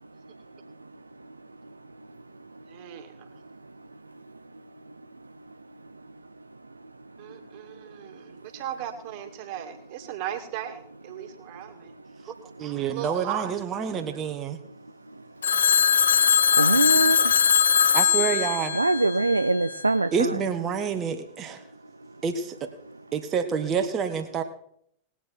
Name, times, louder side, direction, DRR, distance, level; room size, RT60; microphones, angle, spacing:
voice 1, 2.7-3.3 7.2-11.9 12.9-13.5 16.5-16.6, right 11 dB, 45° right, 6 dB, 2.3 m, -37 dB
voice 2, 12.6-14.6 17.9-18.8 20.1-21.6 22.2-22.7 23.1-24.4, right 7 dB, 25° right, 5 dB, 1.5 m, -28 dB
Telephone, 15.4-19.7, left 7 dB, 70° left, 0.6 m, -21 dB
voice 3, 16.6-17.3 18.7-20.4, right 2 dB, 80° right, 10 dB, 0.5 m, -23 dB
20.0 x 8.8 x 4.5 m, 0.68 s
figure-of-eight pair, 90°, 0 cm